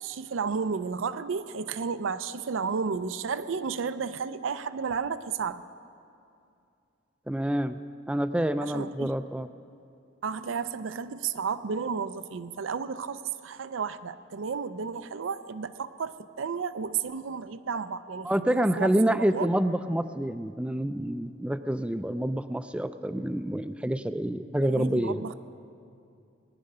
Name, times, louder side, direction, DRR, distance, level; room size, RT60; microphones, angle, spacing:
voice 1, 0.0-5.6 8.6-9.1 10.2-19.5 24.6-25.3, right 5 dB, 85° right, 13 dB, 0.5 m, -32 dB
voice 2, 7.3-7.8 8.1-9.5 18.2-25.3, right 1 dB, 5° right, 11 dB, 0.3 m, -27 dB
20.0 x 10.5 x 5.5 m, 2.5 s
head